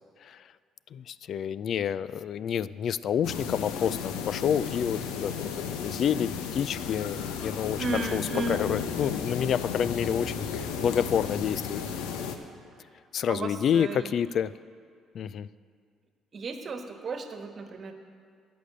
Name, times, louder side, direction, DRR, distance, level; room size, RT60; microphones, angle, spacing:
voice 1, 0.9-5.5 5.8-11.8 13.1-14.5 15.1-15.5, left 8 dB, 60° left, 18 dB, 0.3 m, -29 dB
sound 1, 3.2-12.4, left 7 dB, 80° left, 0.9 m, -34 dB
voice 2, 7.8-8.6 13.3-14.1 16.3-17.9, right 3 dB, 45° right, 6 dB, 1.4 m, -34 dB
11.0 x 6.9 x 7.9 m, 2.2 s
hypercardioid pair, 60°, 0 cm